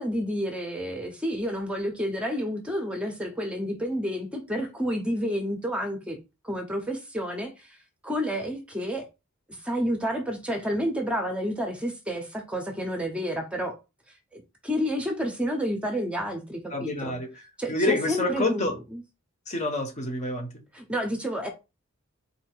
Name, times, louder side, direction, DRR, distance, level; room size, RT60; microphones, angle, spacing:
voice 1, 0.0-6.2 6.4-7.8 8.0-9.1 9.5-13.8 14.3-17.2 17.6-19.0 20.7-21.5, equal, 5° right, 0.8 m, -30 dB
voice 2, 16.7-17.3 17.7-18.7 19.5-20.5, left 2 dB, 35° left, 1.0 m, -27 dB
4.1 x 2.8 x 4.5 m
head